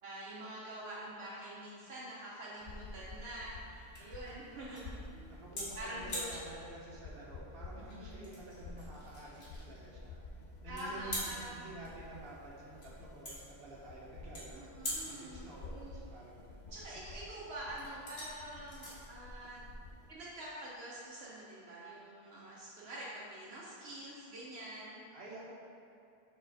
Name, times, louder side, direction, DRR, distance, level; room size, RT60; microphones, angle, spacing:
voice 1, 0.0-5.3 5.7-6.3 7.9-8.2 10.7-11.6 14.5-16.0 16.7-19.6 20.1-25.0, right 1 dB, 80° right, -7 dB, 1.2 m, -46 dB
sound 1, 1.7-20.5, left 1 dB, 80° left, 2.0 m, -47 dB
sound 2, 2.6-20.1, left 2 dB, 55° left, 0.7 m, -51 dB
voice 2, 5.3-10.2 10.6-11.2 11.5-16.7 25.1-25.5, right 2 dB, 65° right, -5 dB, 1.3 m, -50 dB
6.2 x 4.4 x 4.0 m, 2.5 s
omnidirectional pair, 1.0 m